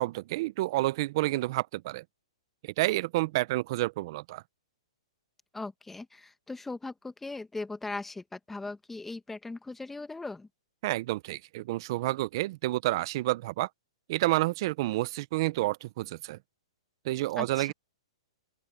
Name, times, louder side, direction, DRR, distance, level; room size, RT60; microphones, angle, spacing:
voice 1, 0.0-2.0 2.8-4.4 10.8-13.7 14.1-16.4 17.0-17.7, right 18 dB, 50° right, 0.7 m, -29 dB
voice 2, 5.5-10.5 17.4-17.7, left 3 dB, 5° left, 1.6 m, -39 dB
open air
hypercardioid pair, 140°, 3 cm